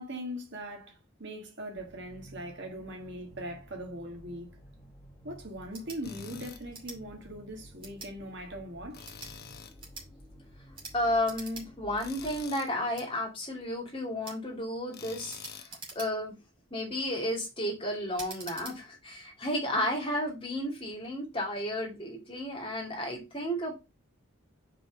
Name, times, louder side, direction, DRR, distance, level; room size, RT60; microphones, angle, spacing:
voice 1, 0.0-4.6 5.2-9.1, equal, 55° right, 1.7 m, -41 dB
sound 1, 1.7-12.5, equal, 10° left, 2.8 m, -53 dB
sound 2, 5.7-6.0 6.7-7.0 7.8-8.1 8.9-9.3 9.8-10.1 10.7-11.0 11.2-11.7 12.0-12.1 12.9-13.1 14.2-14.4 15.3-16.4 16.9-17.2 18.1-18.8, right 3 dB, 25° right, 2.5 m, -45 dB
Tools, 6.0-6.6 8.9-9.8 12.0-12.7 14.9-15.7, left 6 dB, 50° left, 0.9 m, -46 dB
voice 2, 10.9-16.3 16.7-23.7, left 1 dB, 25° left, 2.7 m, -32 dB
5.0 x 4.7 x 5.1 m
head